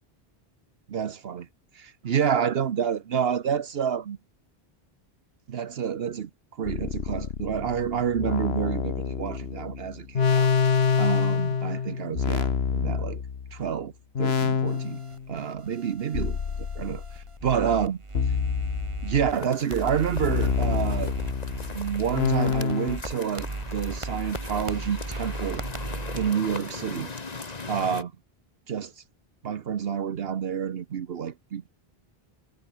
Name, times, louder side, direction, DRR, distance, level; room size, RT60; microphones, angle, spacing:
voice 1, 0.9-1.5 1.7-4.2 5.5-6.3 6.6-10.5 11.0-13.2 13.5-13.9 14.2-15.0 15.3-16.4 16.7-18.0 19.0-21.1 21.7-25.6 26.1-27.1 27.7-28.1 28.7-28.9 29.4-31.7, right 8 dB, 70° right, 1.1 m, -28 dB
sound 1, 6.7-13.7 14.1-15.3 16.1-17.3 18.1-19.4 20.1-23.0, left 6 dB, 80° left, 1.5 m, -27 dB
sound 2, 14.7-19.4 19.7-26.3, right 3 dB, 30° right, 1.5 m, -37 dB
sound 3, 19.3-28.0, left 4 dB, 40° left, 1.6 m, -39 dB
omnidirectional pair, 1.0 m